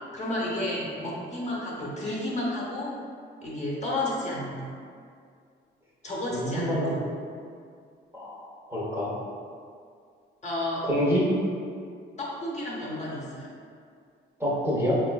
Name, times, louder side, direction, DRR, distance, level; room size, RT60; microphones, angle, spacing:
voice 1, 0.1-2.9 3.4-4.6 6.0-6.9 10.4-10.9 12.2-13.5, left 1 dB, 35° left, -5 dB, 0.8 m, -31 dB
voice 2, 6.3-6.9 8.1-9.1 10.8-11.2 14.4-15.0, equal, 10° right, -7 dB, 0.7 m, -27 dB
3.7 x 2.4 x 2.2 m, 2.2 s
cardioid pair, 90°, 20 cm